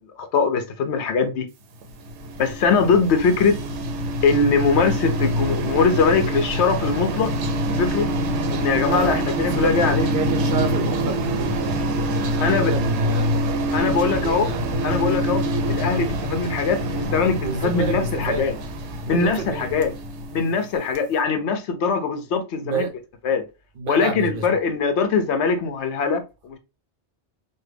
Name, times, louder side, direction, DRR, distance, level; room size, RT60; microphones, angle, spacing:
voice 1, 0.2-1.5 2.4-3.6 4.2-7.3 7.7-8.1 8.5-10.1 12.4-12.7 13.7-14.5 14.8-15.4 15.7-18.5 19.1-19.9 20.3-22.9 23.2-23.4 23.9-26.6, left 5 dB, 75° left, 0.9 m, -21 dB
sound 1, 1.8-20.8, equal, 85° right, 1.0 m, -25 dB
voice 2, 8.8-11.8 12.1-13.3 13.6-14.6 17.4-18.4 19.0-19.7 22.6-22.9 23.8-24.6, right 4 dB, 60° right, 0.7 m, -30 dB
3.2 x 2.2 x 3.3 m
omnidirectional pair, 1.2 m